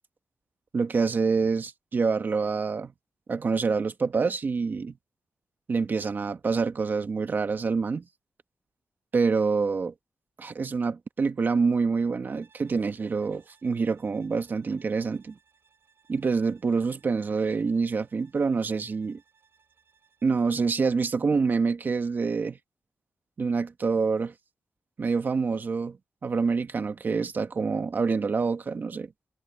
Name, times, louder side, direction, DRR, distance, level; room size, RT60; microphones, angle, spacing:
voice 1, 0.7-2.9 3.3-5.0 5.7-8.0 9.1-9.9 10.4-15.3 16.1-19.2 20.2-22.6 23.4-24.3 25.0-26.0 26.2-29.1, right 4 dB, 45° right, 1.4 m, -26 dB
Bowed string instrument, 12.3-20.7, right 6 dB, 65° right, 4.8 m, -65 dB
wide cardioid pair, 130°, 4 cm